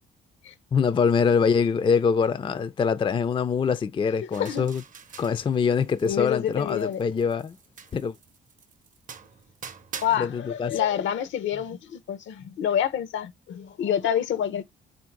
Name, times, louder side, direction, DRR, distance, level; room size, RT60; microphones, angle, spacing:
voice 1, 0.7-4.8 5.2-7.6 7.9-8.1 10.2-10.7, left 6 dB, 25° left, 0.4 m, -24 dB
sound 1, 4.3-6.2 6.5-10.1, right 6 dB, 40° right, 0.6 m, -44 dB
voice 2, 6.0-7.0 10.0-14.6, left 9 dB, 70° left, 0.7 m, -27 dB
3.5 x 2.6 x 4.5 m
cardioid pair, 90°, 20 cm